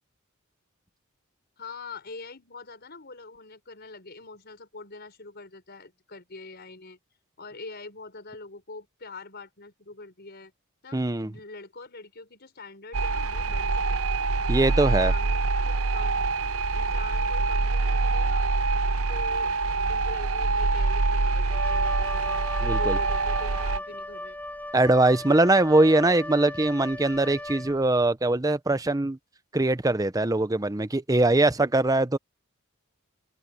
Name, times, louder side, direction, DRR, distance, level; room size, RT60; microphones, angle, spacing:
voice 1, 1.6-7.0 7.4-10.5 10.8-14.0 14.5-16.3 16.7-18.5 19.1-19.5 19.9-22.5 22.7-24.4, left 3 dB, 50° left, 5.3 m, -44 dB
voice 2, 10.9-11.3 14.5-15.1 22.6-23.0 24.7-29.2 29.5-32.2, right 2 dB, 15° right, 0.7 m, -22 dB
sound 1, 12.9-23.8, right 3 dB, 75° right, 0.9 m, -25 dB
Wind instrument woodwind instrument, 21.5-28.1, left 1 dB, 10° left, 1.4 m, -38 dB
open air
head